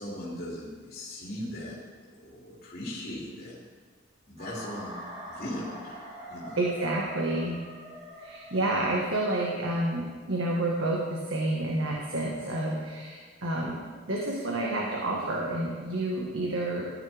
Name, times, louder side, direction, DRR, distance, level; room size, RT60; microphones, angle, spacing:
voice 1, 0.0-3.6 4.3-5.0 5.2-6.6, left 1 dB, 50° left, -6 dB, 2.9 m, -39 dB
sound 1, 4.4-9.4, equal, 40° right, 4.0 m, -44 dB
voice 2, 6.6-7.6 8.2-13.8 14.1-16.9, right 1 dB, 80° right, -2 dB, 1.6 m, -29 dB
15.0 x 12.5 x 3.5 m, 1.5 s
head